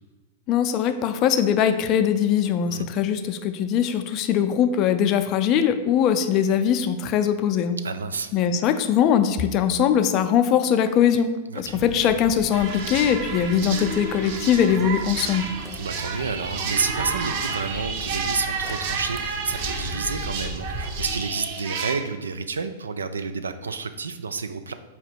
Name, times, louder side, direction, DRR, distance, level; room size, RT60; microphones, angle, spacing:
voice 1, 0.5-7.8 8.3-11.3 11.6-15.5, left 8 dB, 40° left, 9 dB, 0.4 m, -21 dB
voice 2, 7.8-8.3 11.5-11.8 15.7-24.7, right 5 dB, 85° right, 10 dB, 0.3 m, -30 dB
sound 1, 11.7-21.2, equal, 10° right, 0.6 m, -37 dB
sound 2, 12.5-21.9, right 5 dB, 55° right, 0.6 m, -31 dB
4.1 x 2.9 x 4.5 m, 1.2 s
hypercardioid pair, 105°, 0 cm